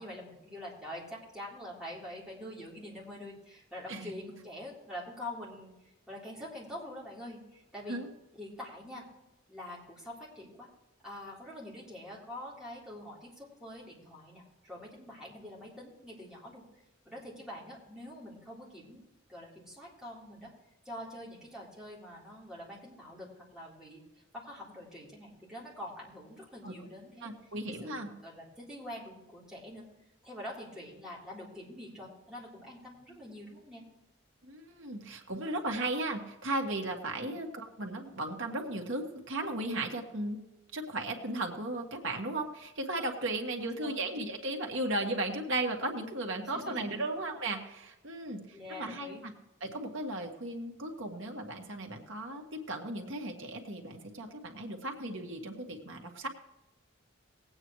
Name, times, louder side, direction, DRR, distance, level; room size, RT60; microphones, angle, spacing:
voice 1, 0.0-5.7 6.1-8.0 8.3-9.1 9.5-10.7 11.0-16.6 17.0-19.0 19.3-20.5 20.8-24.1 24.3-27.3 27.8-29.9 30.2-33.8 37.2-37.3 43.6-44.0 46.4-47.1 48.5-49.3, left 1 dB, 5° right, -7 dB, 3.6 m, -45 dB
voice 2, 27.2-28.1 34.5-40.4 40.7-48.4 48.8-49.3 49.6-52.4 52.7-56.3, right 2 dB, 80° right, 2 dB, 1.7 m, -36 dB
19.5 x 8.9 x 3.1 m, 0.95 s
head